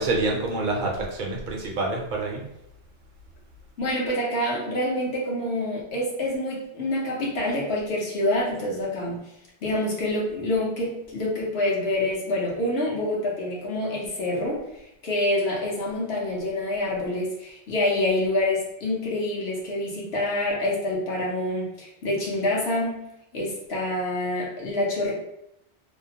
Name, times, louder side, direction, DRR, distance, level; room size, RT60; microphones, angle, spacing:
voice 1, 0.0-2.4, right 2 dB, 55° right, -1 dB, 0.6 m, -27 dB
voice 2, 3.8-9.2 9.6-14.6 15.0-23.1 23.3-25.1, left 1 dB, 65° left, -3 dB, 1.0 m, -26 dB
2.7 x 2.0 x 2.7 m, 0.82 s
omnidirectional pair, 1.2 m